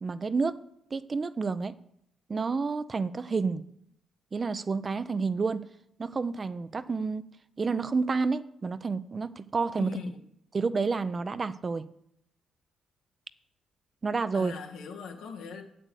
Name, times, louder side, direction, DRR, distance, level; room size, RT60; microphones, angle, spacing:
voice 1, 0.0-0.6 0.9-1.7 2.3-3.6 4.3-5.7 6.0-7.3 7.6-9.9 10.5-11.9 14.0-14.5, right 4 dB, 35° right, 14 dB, 0.5 m, -29 dB
voice 2, 9.8-10.2 14.3-15.6, left 6 dB, 90° left, 1 dB, 1.8 m, -40 dB
8.1 x 7.6 x 8.1 m, 0.76 s
cardioid pair, 90°, 0 cm